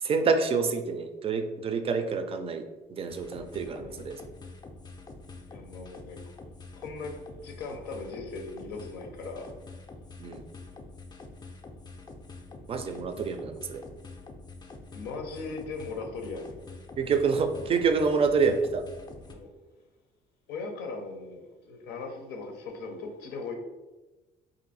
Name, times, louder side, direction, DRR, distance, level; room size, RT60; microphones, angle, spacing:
voice 1, 0.0-2.6 2.9-4.2 10.2-10.4 12.7-13.8 17.0-18.8, right 5 dB, 35° right, 7 dB, 0.4 m, -27 dB
sound 1, 3.1-19.3, left 3 dB, 25° left, 0.4 m, -46 dB
voice 2, 3.6-4.1 5.5-6.2 6.8-9.5 14.9-16.6 17.6-17.7 19.3-19.5 20.5-23.5, left 3 dB, 90° left, 3 dB, 0.6 m, -39 dB
2.6 x 2.5 x 4.0 m, 1.1 s
cardioid pair, 110°, 17 cm